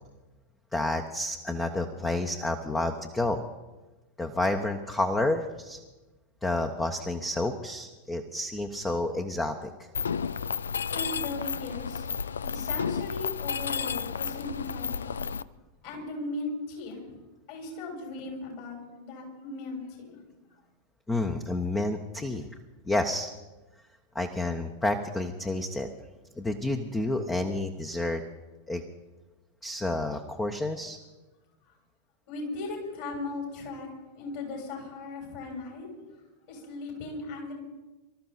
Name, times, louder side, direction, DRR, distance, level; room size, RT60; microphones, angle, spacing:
voice 1, 0.7-3.4 4.2-5.8 6.4-9.9 21.1-22.5 22.9-23.3 24.1-25.9 26.4-28.2 28.7-28.8 29.6-31.0, left 2 dB, 10° left, 6 dB, 1.2 m, -30 dB
Mechanisms, 9.9-15.4, left 6 dB, 70° left, 0.4 m, -32 dB
voice 2, 10.9-12.1 12.4-15.3 15.8-17.0 17.5-20.2 32.3-35.9 36.5-37.5, left 3 dB, 50° left, -1 dB, 6.9 m, -37 dB
25.0 x 13.5 x 4.2 m, 1.1 s
figure-of-eight pair, 90°, 0 cm